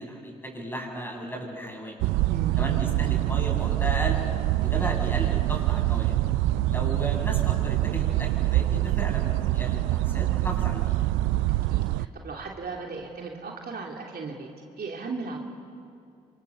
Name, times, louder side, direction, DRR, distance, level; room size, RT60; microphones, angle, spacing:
voice 1, 0.0-2.0 2.6-4.2 4.6-6.2 6.7-10.9, right 1 dB, 10° left, 1 dB, 7.8 m, -35 dB
sound 1, 2.0-12.1, right 16 dB, 80° right, 0.5 m, -25 dB
voice 2, 2.3-2.6 4.6-5.0 11.4-14.5 14.8-15.4, right 4 dB, 50° right, 0 dB, 3.1 m, -37 dB
26.0 x 25.0 x 7.1 m, 2.4 s
hypercardioid pair, 45°, 20 cm